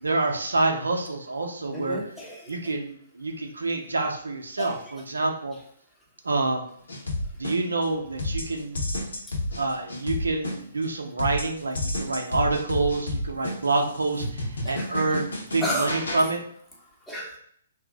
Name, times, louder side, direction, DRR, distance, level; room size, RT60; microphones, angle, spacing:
voice 1, 0.0-2.0 2.5-5.5 6.3-6.6 7.4-8.8 9.6-14.2 14.7-16.4, right 3 dB, 75° right, 2 dB, 0.6 m, -27 dB
voice 2, 1.7-2.5 4.6-4.8 14.6-14.9 15.6-15.9 17.1-17.4, equal, 5° left, -4 dB, 0.8 m, -32 dB
sound 1, 6.9-7.9 8.2-10.9 11.2-16.2, left 1 dB, 70° left, 0.7 m, -31 dB
2.5 x 2.0 x 3.7 m, 0.65 s
figure-of-eight pair, 130°, 0 cm